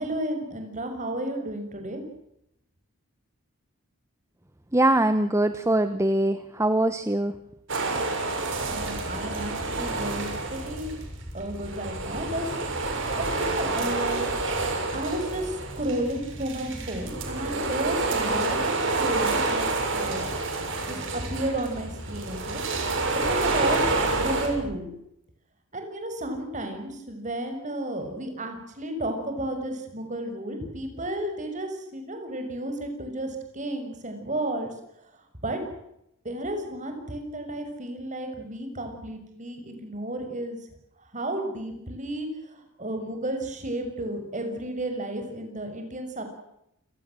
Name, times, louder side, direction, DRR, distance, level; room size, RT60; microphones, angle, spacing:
voice 1, 0.0-2.0 8.7-11.0 11.3-12.5 13.2-14.3 14.9-20.3 20.9-22.6 23.1-24.9 25.7-34.7 35.4-35.6 36.2-40.6 41.1-46.2, right 1 dB, 35° right, 6 dB, 6.4 m, -32 dB
voice 2, 4.7-7.3, right 1 dB, 15° right, 10 dB, 1.1 m, -22 dB
sound 1, 7.7-11.0 11.3-24.5, right 3 dB, 60° right, 6.7 m, -28 dB
sound 2, 8.5-24.8, equal, 20° left, 6.4 m, -40 dB
29.5 x 19.0 x 7.7 m, 0.80 s
head